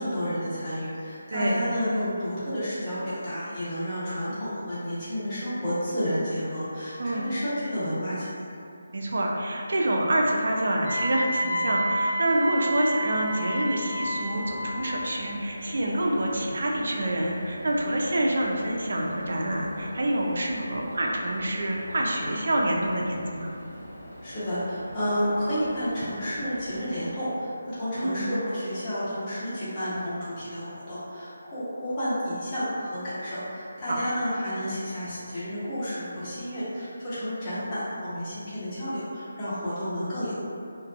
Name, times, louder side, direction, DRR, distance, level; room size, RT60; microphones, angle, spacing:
voice 1, 0.0-8.4 24.2-40.3, equal, 25° left, -13 dB, 0.9 m, -31 dB
voice 2, 1.3-1.7 7.0-7.3 8.9-23.5 28.0-28.3 33.9-34.0, right 1 dB, 60° right, -1 dB, 0.4 m, -27 dB
Wind instrument woodwind instrument, 10.8-15.0, equal, 35° right, 0.9 m, -29 dB
sound 1, 13.9-27.1, equal, 65° left, 0.8 m, -43 dB
2.5 x 2.1 x 2.4 m, 2.6 s
figure-of-eight pair, 160°, 0 cm